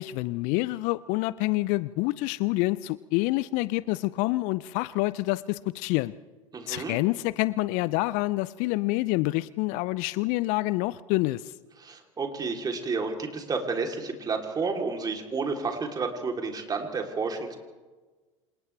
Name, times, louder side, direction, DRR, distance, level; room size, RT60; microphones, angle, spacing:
voice 1, 0.0-6.1 6.7-11.5, left 20 dB, 50° left, 19 dB, 0.5 m, -27 dB
voice 2, 6.5-7.0 11.8-17.6, right 4 dB, 25° right, 2 dB, 3.5 m, -31 dB
27.5 x 27.0 x 3.4 m, 1.3 s
figure-of-eight pair, 80°, 17 cm